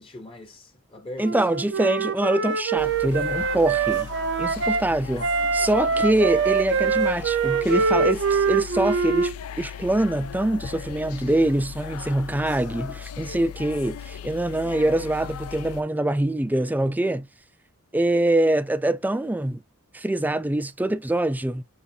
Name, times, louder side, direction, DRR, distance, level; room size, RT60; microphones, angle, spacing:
voice 1, 0.0-1.6 5.9-6.1 6.8-6.9, left 1 dB, 25° left, 0.8 m, -42 dB
voice 2, 1.2-4.1 4.4-17.3 17.9-19.6 19.9-21.6, right 1 dB, 10° right, 0.3 m, -24 dB
Wind instrument woodwind instrument, 1.2-4.8 5.2-9.3, right 5 dB, 55° right, 0.6 m, -24 dB
sound 1, 2.8-15.8, left 8 dB, 70° left, 0.4 m, -38 dB
6.6 x 2.5 x 2.7 m
head